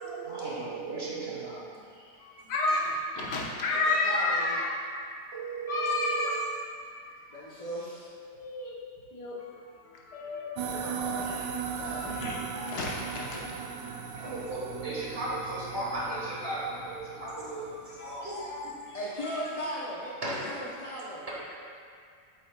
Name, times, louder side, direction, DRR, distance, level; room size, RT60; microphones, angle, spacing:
voice 1, 0.0-1.6 2.0-2.1 5.3-6.3 14.2-18.7 20.2-20.5, right 2 dB, 40° right, -6 dB, 1.6 m, -35 dB
voice 2, 2.2-4.7 5.7-6.4 8.3-8.8 9.1-14.1 18.0-19.0 19.2-19.4, left 2 dB, 90° left, -4 dB, 1.7 m, -32 dB
voice 3, 3.7-4.7 7.3-8.1 10.7-11.4 11.7-12.0 18.9-21.3, equal, 40° left, -6 dB, 0.5 m, -37 dB
sound 1, 10.6-18.2, right 6 dB, 80° right, 1.2 m, -38 dB
8.4 x 7.8 x 2.3 m, 2.2 s
omnidirectional pair, 1.8 m